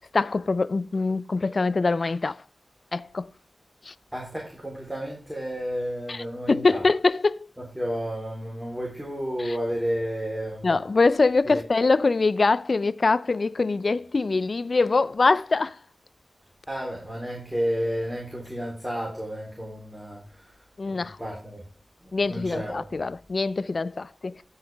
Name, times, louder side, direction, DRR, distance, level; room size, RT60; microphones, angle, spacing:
voice 1, 0.1-2.4 2.9-3.3 3.9-4.0 6.1-7.5 9.5-9.6 10.6-15.8 20.8-21.2 22.1-24.4, left 3 dB, 60° left, 0.5 m, -23 dB
voice 2, 4.1-6.8 7.6-10.7 11.5-11.6 16.7-21.7 22.0-22.9, equal, 10° right, 3.9 m, -32 dB
17.0 x 5.8 x 3.5 m
cardioid pair, 55°, 0 cm